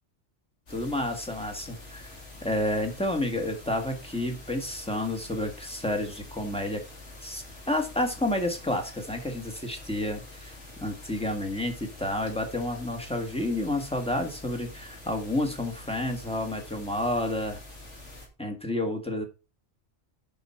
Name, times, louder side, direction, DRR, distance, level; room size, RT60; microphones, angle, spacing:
sound 1, 0.7-18.3, left 2 dB, 90° left, 3.2 m, -46 dB
voice 1, 0.7-2.1 2.4-6.8 7.2-10.6 10.8-17.6 18.4-19.2, left 1 dB, 5° left, 3 dB, 1.8 m, -30 dB
8.0 x 6.1 x 5.7 m, 0.32 s
omnidirectional pair, 1.2 m